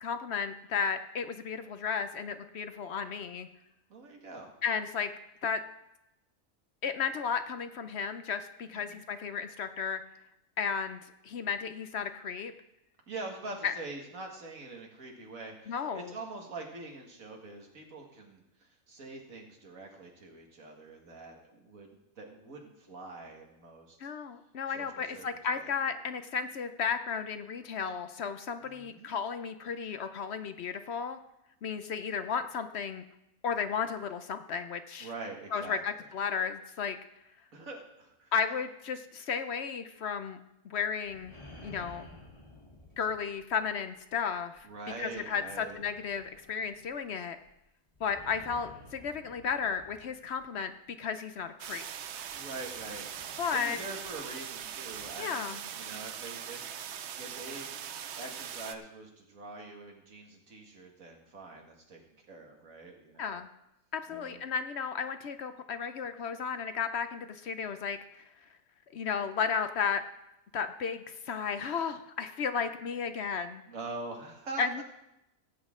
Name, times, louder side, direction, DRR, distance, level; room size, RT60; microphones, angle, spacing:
voice 1, 0.0-3.5 4.6-5.1 5.4-5.6 6.8-10.0 10.6-12.5 13.6-13.7 15.7-16.1 24.0-31.2 31.6-33.0 33.4-35.1 35.5-37.0 38.3-40.4 40.6-41.3 41.6-42.1 43.0-44.7 45.0-47.4 48.0-50.7 51.0-51.8 53.4-53.8 55.2-55.6 63.2-63.5 63.9-68.2 68.9-70.0 70.5-73.6 74.6-74.8, left 6 dB, 60° left, 9 dB, 0.8 m, -34 dB
voice 2, 3.9-4.5 8.7-9.0 13.1-21.9 22.2-24.0 24.7-25.3 25.5-25.7 28.6-29.2 35.0-35.8 37.5-38.3 44.6-45.8 52.3-53.1 53.5-56.6 56.9-63.4 64.1-64.4 73.7-74.8, right 3 dB, 80° right, 1 dB, 2.2 m, -44 dB
sound 1, 41.0-44.0 44.6-50.7 51.7-51.9 52.2-55.1, left 1 dB, 25° left, 1.9 m, -54 dB
sound 2, 51.6-58.7, right 8 dB, 60° right, 0.9 m, -41 dB
17.5 x 8.4 x 3.7 m, 0.87 s
omnidirectional pair, 1.4 m